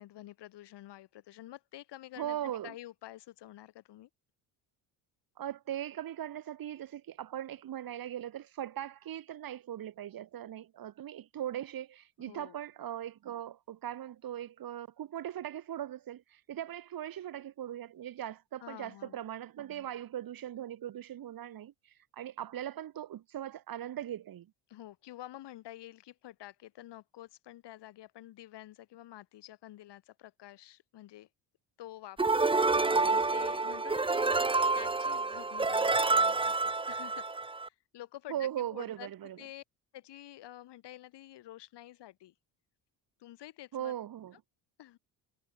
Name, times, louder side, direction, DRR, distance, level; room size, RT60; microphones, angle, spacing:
voice 1, 0.0-2.4 2.6-4.1 12.2-12.6 18.6-19.2 24.7-31.3 31.8-37.3 37.6-39.1 39.4-39.6 39.9-42.3 43.2-43.9 44.8-45.0, left 14 dB, 70° left, 7.5 m, -49 dB
voice 2, 2.2-2.7 5.4-24.5 38.3-39.4 43.7-44.4, right 11 dB, 55° right, 2.1 m, -39 dB
sound 1, 32.2-37.7, right 3 dB, 10° right, 0.9 m, -28 dB
cardioid pair, 90°, 43 cm